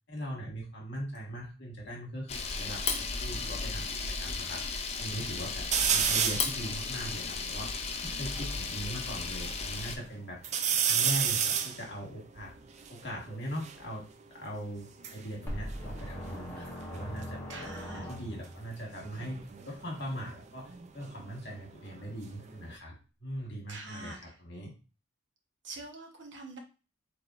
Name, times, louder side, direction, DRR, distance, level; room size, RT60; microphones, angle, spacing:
voice 1, 0.1-4.6 5.0-7.8 8.0-10.4 10.9-12.5 12.9-14.0 14.3-22.9 23.2-24.7, equal, 55° left, -1 dB, 1.6 m, -40 dB
Camera, 2.3-10.0, left 4 dB, 30° left, 0.5 m, -35 dB
sound 1, 5.7-6.6 7.1-7.2 7.4-8.9 9.5-10.0 10.4-13.8 14.8-16.7 16.9-17.4 19.0-21.6 22.0-22.8, right 8 dB, 35° right, 0.4 m, -32 dB
sound 2, 15.5-18.7, equal, 10° left, 0.9 m, -40 dB
voice 2, 17.5-18.1 23.7-24.3 25.6-26.6, right 2 dB, 60° right, 2 dB, 1.0 m, -44 dB
4.7 x 3.4 x 2.5 m, 0.33 s
head